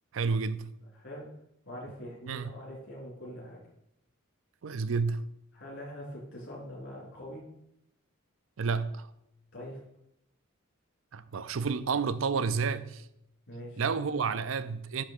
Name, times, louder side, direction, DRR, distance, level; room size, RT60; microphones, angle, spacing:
voice 1, 0.1-0.7 2.3-2.5 4.6-5.2 8.6-9.1 11.1-13.0 13.8-15.0, right 5 dB, 70° right, 0.5 m, -30 dB
voice 2, 0.9-1.2 1.6-3.6 5.5-7.4 9.5-9.8 13.5-13.8, equal, 65° left, 3.5 m, -43 dB
9.9 x 3.4 x 6.6 m
head